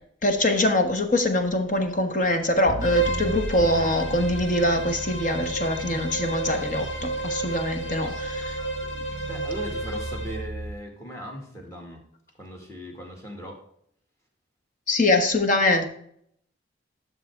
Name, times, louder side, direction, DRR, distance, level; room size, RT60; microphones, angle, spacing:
voice 1, 0.2-8.6 14.9-15.9, left 1 dB, 45° left, 5 dB, 1.2 m, -23 dB
sound 1, 2.6-10.8, right 2 dB, 45° right, 0.7 m, -36 dB
Bowed string instrument, 2.8-10.5, right 1 dB, 90° left, 1.4 m, -32 dB
voice 2, 9.3-12.0 12.4-13.6, equal, 15° left, 1 dB, 2.0 m, -39 dB
11.5 x 6.1 x 3.6 m, 0.68 s
head